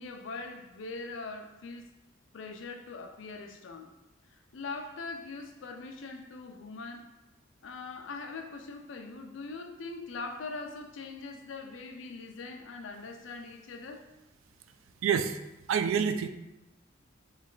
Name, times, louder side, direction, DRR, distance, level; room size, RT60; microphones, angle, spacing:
voice 1, 0.0-1.9 2.3-3.9 4.3-7.1 7.6-14.1, left 3 dB, 70° left, 0.5 m, -42 dB
voice 2, 15.0-15.4 15.7-16.3, right 7 dB, 85° right, 0.3 m, -27 dB
3.2 x 3.2 x 3.8 m
head